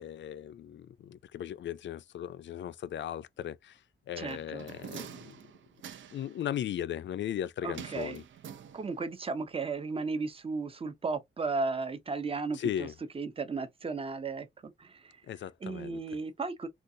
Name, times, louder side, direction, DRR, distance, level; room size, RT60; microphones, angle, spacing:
voice 1, 0.0-3.8 4.1-5.4 6.1-8.2 12.5-12.9 15.3-16.0, left 10 dB, 65° left, 0.4 m, -37 dB
voice 2, 4.2-4.7 7.6-8.2 8.7-12.9 13.1-15.2 15.6-16.7, right 4 dB, 30° right, 0.6 m, -35 dB
sound 1, 4.3-6.4 7.7-9.2 9.5-9.6, right 8 dB, 75° right, 0.5 m, -46 dB
3.8 x 2.4 x 2.6 m
wide cardioid pair, 110°, 20 cm